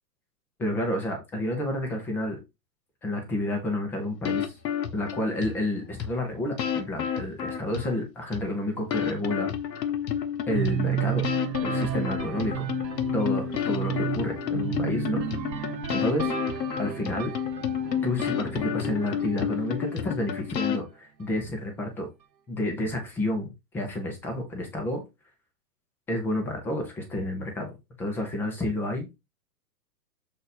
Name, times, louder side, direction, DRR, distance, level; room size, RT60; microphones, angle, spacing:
voice 1, 0.6-2.4 3.0-4.5 4.9-9.5 10.5-11.2 11.6-12.7 13.1-15.2 15.6-16.3 16.8-17.3 18.0-22.1 22.5-23.5 23.7-25.0 26.1-27.7 28.0-29.1, left 1 dB, 5° left, 4 dB, 0.5 m, -30 dB
sound 1, 4.3-5.6 6.0-6.1 6.6-8.0 8.3-8.4 8.9-20.8, left 8 dB, 75° left, 1.2 m, -30 dB
sound 2, 10.5-20.4, right 10 dB, 85° right, 1.1 m, -33 dB
6.7 x 3.8 x 4.1 m, 0.24 s
hypercardioid pair, 145°, 50 cm